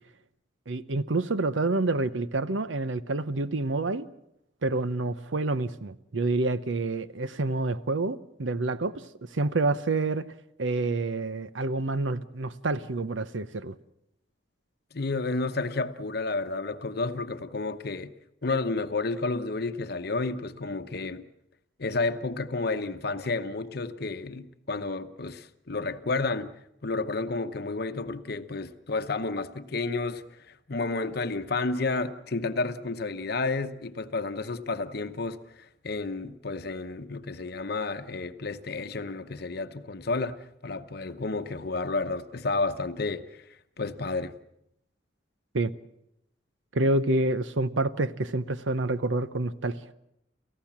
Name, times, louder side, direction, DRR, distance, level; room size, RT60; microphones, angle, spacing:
voice 1, 0.7-4.1 4.6-9.0 9.3-10.3 10.6-13.7 45.5-45.7 46.7-49.9, right 2 dB, 80° right, 0.8 m, -28 dB
voice 2, 14.9-18.1 18.4-21.2 21.8-26.5 26.8-43.5 43.8-44.3, left 3 dB, 55° left, 0.9 m, -31 dB
29.5 x 15.0 x 7.4 m
head